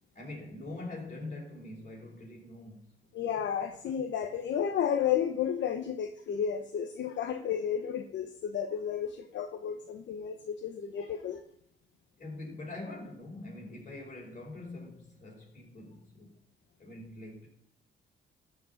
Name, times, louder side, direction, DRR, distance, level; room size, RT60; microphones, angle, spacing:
voice 1, 0.1-2.9 12.2-16.3 16.8-17.5, left 2 dB, 40° left, 4.9 m, -44 dB
voice 2, 3.1-11.4, left 8 dB, 65° left, 0.9 m, -32 dB
13.5 x 5.1 x 5.7 m
cardioid pair, 90°, 20 cm